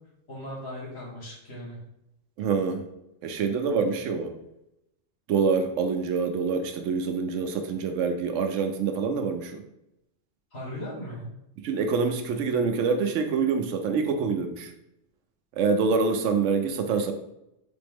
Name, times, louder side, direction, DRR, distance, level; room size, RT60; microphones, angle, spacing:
voice 1, 0.3-1.8 10.5-11.3, equal, 55° left, -5 dB, 1.8 m, -37 dB
voice 2, 2.4-2.8 3.2-4.3 5.3-9.6 11.6-14.7 15.6-17.1, right 5 dB, 75° right, 6 dB, 0.9 m, -26 dB
4.2 x 3.5 x 3.5 m, 0.84 s
omnidirectional pair, 1.3 m